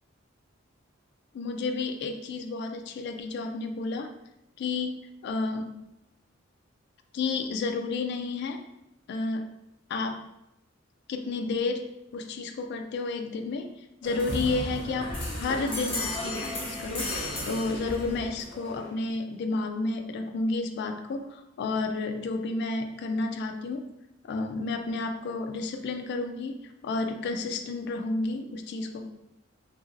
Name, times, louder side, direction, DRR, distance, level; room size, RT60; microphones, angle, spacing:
voice 1, 1.3-4.1 4.6-5.8 7.1-8.6 9.1-9.5 9.9-10.3 11.1-13.7 14.0-23.9 24.2-29.0, left 3 dB, 60° left, 6 dB, 0.3 m, -31 dB
sound 1, 14.0-19.0, left 1 dB, 30° left, 0.9 m, -34 dB
2.8 x 2.6 x 2.5 m, 0.87 s
head